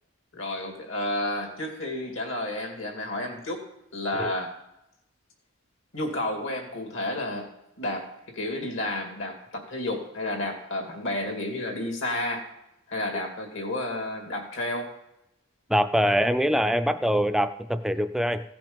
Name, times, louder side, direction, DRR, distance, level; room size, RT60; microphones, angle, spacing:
voice 1, 0.3-3.6 3.9-4.5 5.9-7.5 7.8-12.4 12.9-14.9, left 1 dB, 75° left, 3 dB, 2.4 m, -31 dB
voice 2, 15.7-18.4, equal, ahead, 10 dB, 0.4 m, -24 dB
16.0 x 6.0 x 5.2 m, 0.88 s
head